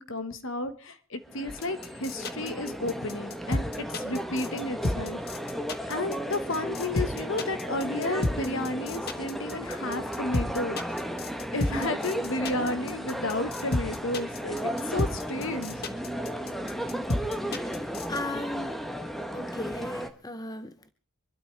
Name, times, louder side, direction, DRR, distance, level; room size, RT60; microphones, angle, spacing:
voice 1, 0.0-3.7 3.9-5.2 5.9-10.8 11.5-15.8, left 2 dB, 60° left, 1.4 m, -32 dB
sound 1, 1.3-20.1, equal, ahead, 1.1 m, -34 dB
sound 2, 1.5-18.2, left 2 dB, 45° left, 1.2 m, -31 dB
voice 2, 18.1-18.7 19.3-20.9, left 2 dB, 15° left, 0.7 m, -36 dB
26.0 x 12.5 x 3.4 m
head